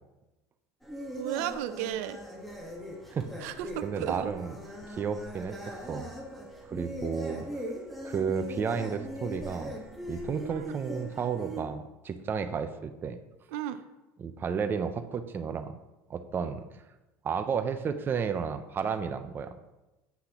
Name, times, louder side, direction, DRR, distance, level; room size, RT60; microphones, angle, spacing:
sound 1, 0.8-11.6, equal, ahead, 1.2 m, -40 dB
voice 1, 1.2-2.2 3.4-4.3 10.6-10.7 13.5-13.8, right 12 dB, 85° right, 11 dB, 0.4 m, -34 dB
voice 2, 3.1-3.5 3.8-4.6 4.8-6.1 6.6-7.5 8.0-9.8 10.1-13.2 14.2-15.8 16.1-16.7 17.2-19.5, right 6 dB, 30° right, 8 dB, 0.5 m, -32 dB
8.3 x 5.7 x 2.9 m, 1.0 s
supercardioid pair, 125°, 8 cm